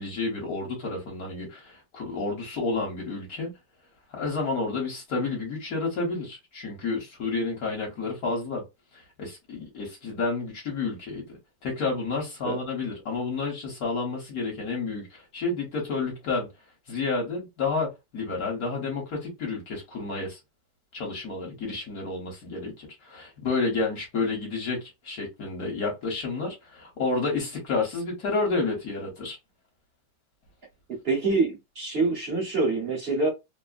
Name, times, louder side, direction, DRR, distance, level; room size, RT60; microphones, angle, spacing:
voice 1, 0.0-3.5 4.1-8.6 9.2-11.4 11.6-16.5 16.9-17.9 18.1-20.4 20.9-29.4, left 3 dB, 55° left, 1.4 m, -30 dB
voice 2, 31.0-33.3, right 3 dB, 50° right, 0.8 m, -25 dB
3.2 x 2.1 x 2.4 m
omnidirectional pair, 2.0 m